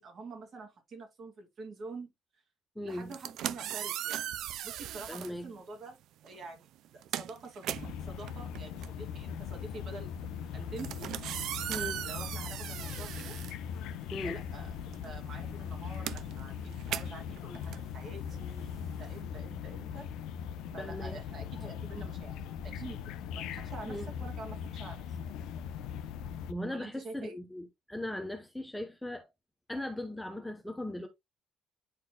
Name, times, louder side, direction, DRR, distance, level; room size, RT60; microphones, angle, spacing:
voice 1, 0.0-2.1 2.8-4.4 4.6-7.8 8.1-10.1 10.5-11.1 12.0-13.3 14.2-20.1 20.7-25.2 26.7-27.4, right 3 dB, 45° right, 2.6 m, -47 dB
voice 2, 2.8-3.1 5.1-5.5 11.7-12.1 14.1-14.4 20.8-21.2 23.9-24.1 26.5-29.3 29.7-31.1, left 1 dB, 5° left, 0.9 m, -38 dB
sound 1, 3.0-5.4 6.2-6.4 6.8-14.3 14.6-19.2, right 12 dB, 70° right, 0.4 m, -39 dB
Park in a city, 7.7-26.5, left 8 dB, 85° left, 0.7 m, -40 dB
9.8 x 4.4 x 2.3 m
cardioid pair, 145°, 0 cm